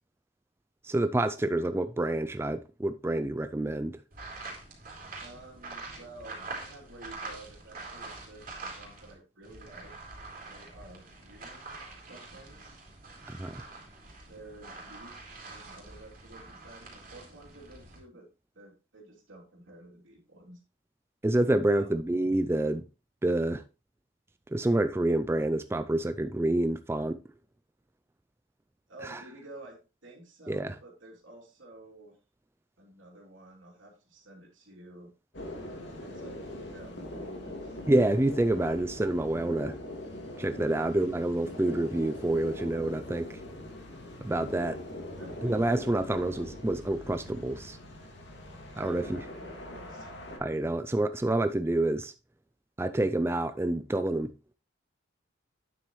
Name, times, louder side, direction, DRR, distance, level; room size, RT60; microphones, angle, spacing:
voice 1, 0.8-4.0 13.3-13.7 21.2-22.8 23.2-23.6 24.5-27.2 29.0-29.2 30.5-30.7 37.9-39.8 40.4-43.4 44.2-44.8 45.4-47.8 48.8-49.2 50.4-52.1 52.8-54.3, right 1 dB, 15° right, 0.3 m, -28 dB
sound 1, 4.1-9.1 9.4-18.0, right 3 dB, 45° right, 3.1 m, -45 dB
voice 2, 5.2-9.9 10.4-11.8 12.1-12.8 14.2-18.3 18.5-20.6 21.7-22.0 28.9-32.1 32.8-35.1 36.0-37.8 40.6-41.0 45.2-45.9 48.7-50.6, right 2 dB, 85° right, 3.0 m, -51 dB
sound 2, 35.3-50.4, left 1 dB, 60° left, 2.3 m, -42 dB
9.3 x 7.3 x 3.1 m
head